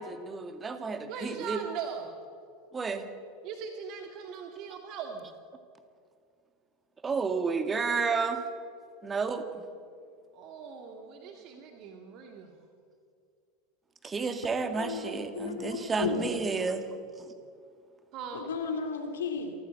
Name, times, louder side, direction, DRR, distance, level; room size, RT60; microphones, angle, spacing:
voice 1, 0.0-1.6 2.7-3.0 7.0-8.4 9.0-9.6 14.0-16.8, right 4 dB, 20° right, 8 dB, 2.0 m, -31 dB
voice 2, 1.1-2.1 3.4-5.3 10.3-12.7 18.1-18.5, right 6 dB, 45° right, 4 dB, 2.1 m, -40 dB
voice 3, 14.8-16.3 18.3-19.6, left 5 dB, 65° left, 5 dB, 2.4 m, -34 dB
27.5 x 14.5 x 7.8 m, 2.3 s
figure-of-eight pair, 80°, 0 cm